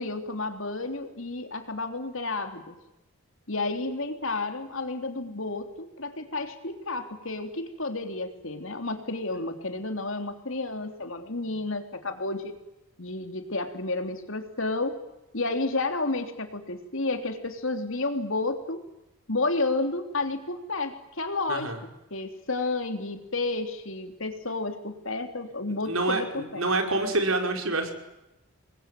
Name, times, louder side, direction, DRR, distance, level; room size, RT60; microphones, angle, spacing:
voice 1, 0.0-2.8 3.5-12.6 13.0-15.0 15.3-18.8 19.3-21.7 22.1-26.7, left 2 dB, 65° left, 6 dB, 3.4 m, -31 dB
voice 2, 21.5-21.8 25.9-27.9, right 2 dB, 70° right, 4 dB, 5.5 m, -27 dB
29.0 x 21.5 x 9.4 m, 0.92 s
head